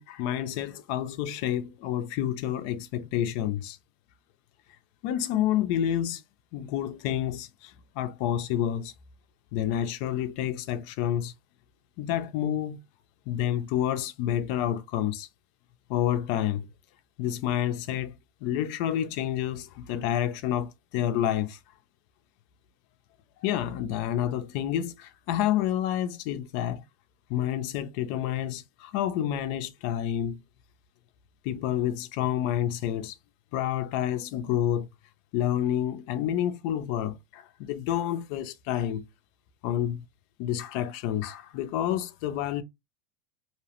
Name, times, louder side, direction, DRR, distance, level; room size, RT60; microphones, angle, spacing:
voice 1, 0.0-3.8 5.0-6.2 6.5-8.9 9.5-11.3 12.0-12.8 13.3-15.3 15.9-16.7 17.2-18.1 18.4-21.6 23.4-26.8 27.3-30.4 31.4-33.2 33.5-34.9 35.3-39.0 39.6-40.0 40.4-42.6, left 11 dB, 60° left, 0.3 m, -29 dB
2.7 x 2.0 x 2.8 m
supercardioid pair, 125°, 5 cm